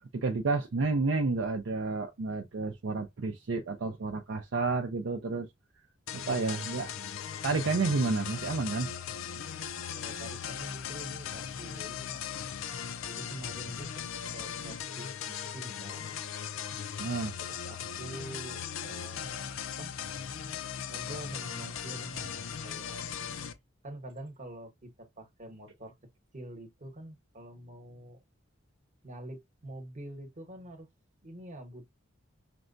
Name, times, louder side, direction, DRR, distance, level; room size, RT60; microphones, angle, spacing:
voice 1, 0.1-5.5 6.3-6.9 7.4-8.9 17.0-17.3, right 3 dB, 65° right, 0.5 m, -30 dB
sound 1, 6.1-23.5, left 8 dB, 75° left, 0.5 m, -38 dB
voice 2, 9.9-12.3 13.0-16.1 17.4-19.9 20.9-23.0 23.8-25.9 26.3-28.2 29.0-30.9 31.2-31.9, right 1 dB, 40° right, 1.0 m, -46 dB
6.0 x 2.2 x 2.5 m
head